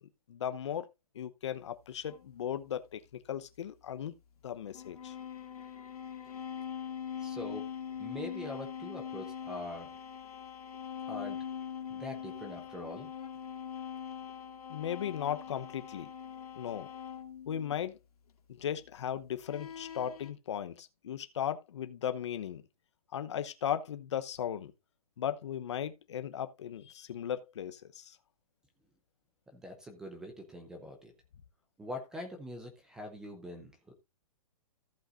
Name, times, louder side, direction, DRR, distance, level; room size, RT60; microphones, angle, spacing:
voice 1, 0.3-0.9 1.1-4.1 4.4-5.1 14.7-16.1 16.6-16.9 17.5-18.0 18.5-22.6 23.1-24.7 25.2-28.2, left 9 dB, 50° left, 0.9 m, -37 dB
sound 1, 2.1-2.3 4.7-17.8 19.4-20.3, left 8 dB, 85° left, 2.3 m, -42 dB
voice 2, 7.2-7.7 8.0-10.0 11.1-11.4 11.9-13.1 29.5-31.1 31.8-33.9, left 1 dB, 5° right, 0.6 m, -43 dB
14.0 x 7.8 x 2.5 m
hypercardioid pair, 175°, 19 cm